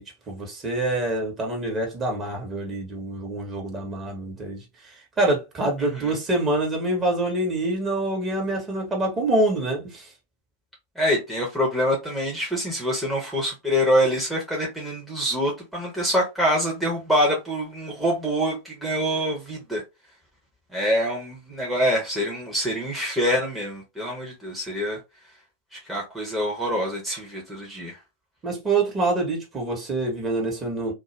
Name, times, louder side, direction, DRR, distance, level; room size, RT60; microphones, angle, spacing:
voice 1, 0.0-4.6 5.2-10.1 28.4-30.9, right 2 dB, 20° right, 1.1 m, -26 dB
voice 2, 5.8-6.1 11.0-19.8 20.7-25.0 25.7-28.0, equal, ahead, 0.9 m, -25 dB
2.4 x 2.2 x 3.0 m
figure-of-eight pair, 90°, 0 cm